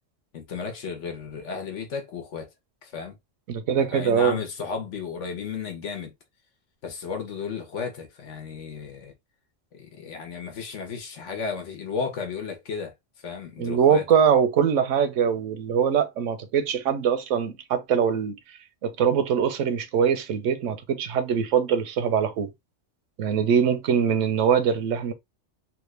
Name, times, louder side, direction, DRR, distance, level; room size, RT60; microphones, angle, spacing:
voice 1, 0.3-2.5 2.8-3.1 3.8-6.1 6.8-9.1 9.7-12.9 13.2-14.0, left 5 dB, 75° left, 1.3 m, -34 dB
voice 2, 3.5-4.4 13.6-18.3 18.8-22.5 23.2-25.1, right 7 dB, 90° right, 1.0 m, -22 dB
3.3 x 2.4 x 3.2 m
omnidirectional pair, 1.3 m